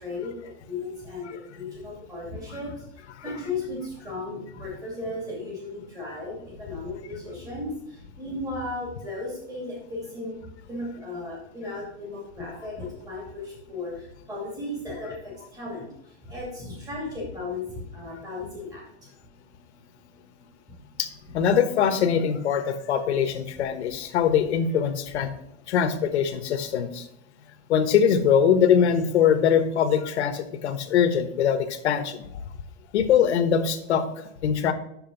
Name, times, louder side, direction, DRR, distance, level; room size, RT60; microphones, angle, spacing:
voice 1, 0.0-10.4 10.7-18.8 20.7-20.8, left 2 dB, 10° right, -4 dB, 2.4 m, -35 dB
voice 2, 21.0-25.3 25.7-27.1 27.7-32.3 32.9-34.7, left 8 dB, 65° left, 7 dB, 1.3 m, -22 dB
9.0 x 6.7 x 3.9 m, 0.75 s
supercardioid pair, 180°, 36 cm